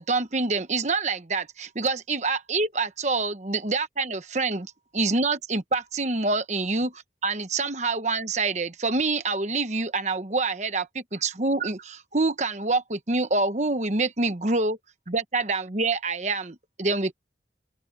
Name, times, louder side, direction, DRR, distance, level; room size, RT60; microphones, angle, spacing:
voice 1, 0.0-14.8 15.1-17.1, right 3 dB, 40° right, 1.1 m, -26 dB
open air
head